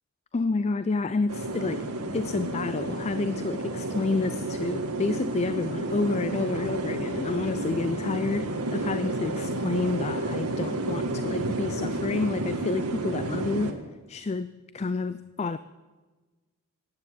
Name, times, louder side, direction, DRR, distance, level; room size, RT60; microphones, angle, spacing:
voice 1, 0.3-13.7 14.1-15.6, left 3 dB, 30° left, 14 dB, 0.4 m, -29 dB
sound 1, 1.3-13.7, right 2 dB, 85° right, 1.7 m, -31 dB
15.0 x 9.9 x 9.0 m, 1.3 s
head